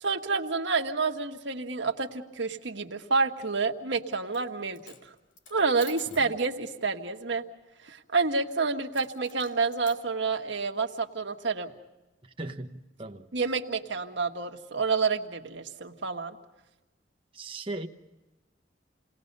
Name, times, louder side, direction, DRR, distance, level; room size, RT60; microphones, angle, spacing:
voice 1, 0.0-5.1 5.5-7.4 7.8-11.7 13.3-16.4, right 4 dB, 65° right, 1.5 m, -29 dB
Coin (dropping), 4.2-4.5 4.7-6.3 8.9-10.0, left 4 dB, 75° left, 2.5 m, -50 dB
voice 2, 12.4-13.3 17.3-17.9, right 2 dB, 25° right, 1.1 m, -38 dB
29.0 x 19.0 x 5.4 m
head